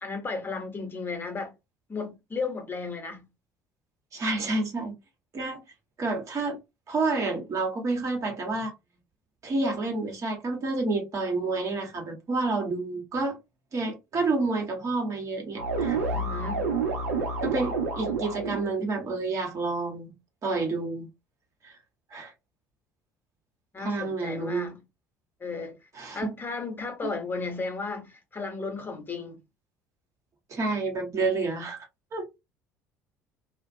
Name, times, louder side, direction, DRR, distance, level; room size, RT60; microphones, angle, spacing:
voice 1, 0.0-1.5 1.9-3.2 16.1-16.6 23.7-24.8 25.4-25.8 26.1-29.4, left 4 dB, 25° left, 1.0 m, -34 dB
voice 2, 4.1-4.9 5.3-5.6 6.0-6.6 6.9-8.7 9.4-13.4 13.7-16.0 17.4-20.1 20.4-21.1 21.6-21.7 22.1-22.3 23.8-24.7 25.9-26.3 27.0-27.1 30.5-32.2, right 3 dB, 40° right, 1.1 m, -29 dB
sound 1, 15.6-18.7, right 4 dB, 80° right, 0.7 m, -29 dB
2.4 x 2.1 x 2.6 m
hypercardioid pair, 60°, 8 cm